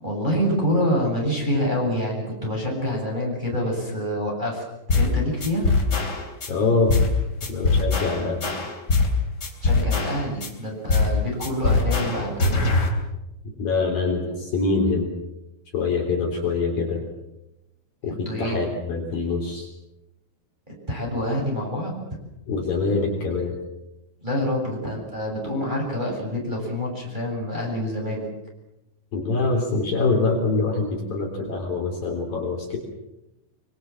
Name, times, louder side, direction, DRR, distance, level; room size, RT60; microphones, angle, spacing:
voice 1, 0.0-4.6 4.9-5.7 9.6-12.6 18.1-18.6 20.7-22.0 24.2-28.3, equal, 10° right, -2 dB, 7.5 m, -26 dB
sound 1, 4.9-5.1 5.4-6.5 6.9-7.1 7.4-9.1 9.4-10.5 10.9-11.2 11.4-12.9, left 3 dB, 25° left, 3.3 m, -22 dB
voice 2, 6.5-6.9 7.5-8.6 13.6-15.1 15.7-17.0 18.0-19.7 22.5-23.5 29.1-32.8, left 3 dB, 50° left, 0 dB, 5.0 m, -24 dB
25.0 x 24.5 x 7.6 m, 0.93 s
omnidirectional pair, 5.6 m